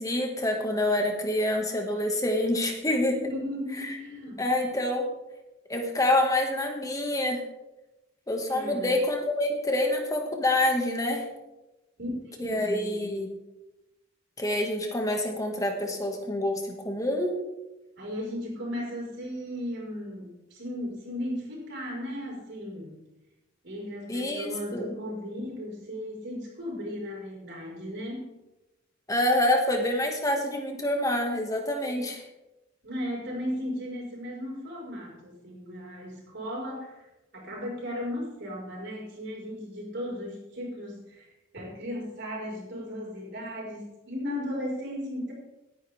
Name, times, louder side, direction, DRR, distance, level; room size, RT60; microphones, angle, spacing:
voice 1, 0.0-3.2 3.8-4.0 4.4-5.1 5.7-7.4 8.3-11.3 12.4-13.3 14.4-17.3 24.1-25.0 29.1-32.2, left 1 dB, 15° left, 2 dB, 2.0 m, -27 dB
voice 2, 3.2-4.4 8.5-9.0 12.0-13.2 18.0-23.0 23.6-28.3 32.8-37.0 37.3-41.3 41.5-45.3, equal, 60° right, -3 dB, 5.3 m, -36 dB
18.0 x 10.0 x 3.6 m, 0.98 s
head